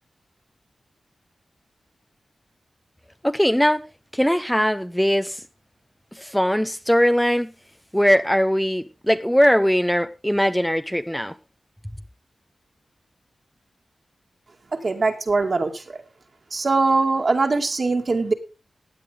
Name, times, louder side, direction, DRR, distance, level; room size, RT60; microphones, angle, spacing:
voice 1, 3.2-3.8 4.1-5.4 6.1-7.5 7.9-11.3, equal, 5° left, 0.6 m, -20 dB
voice 2, 14.8-15.7 16.5-18.3, right 3 dB, 50° right, 2.4 m, -21 dB
16.5 x 9.4 x 3.8 m
wide cardioid pair, 85°, 0 cm